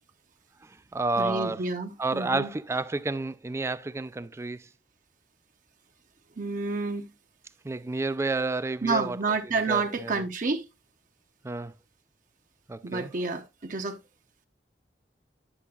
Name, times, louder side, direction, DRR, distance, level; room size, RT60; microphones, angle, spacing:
voice 1, 0.6-1.7 2.0-4.7 7.6-9.2 9.7-10.2 11.4-11.7 12.7-13.1, right 3 dB, 15° right, 0.3 m, -30 dB
voice 2, 1.2-2.5 6.4-7.1 8.8-10.6 12.8-14.0, right 3 dB, 50° right, 0.7 m, -29 dB
9.9 x 6.8 x 2.3 m
head